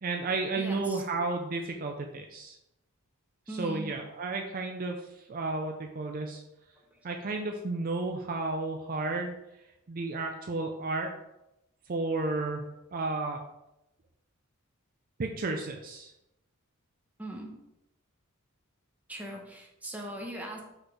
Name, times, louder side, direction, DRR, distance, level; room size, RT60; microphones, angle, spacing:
voice 1, 0.0-2.6 3.5-5.0 5.3-6.4 7.0-9.4 9.9-11.1 11.9-13.4 15.2-16.1, right 3 dB, 40° right, 3 dB, 0.5 m, -32 dB
voice 2, 0.6-1.0 3.5-4.0 6.9-7.0 17.2-17.5 19.1-20.6, right 1 dB, 5° right, 0 dB, 1.0 m, -40 dB
4.8 x 4.4 x 4.8 m, 0.89 s
head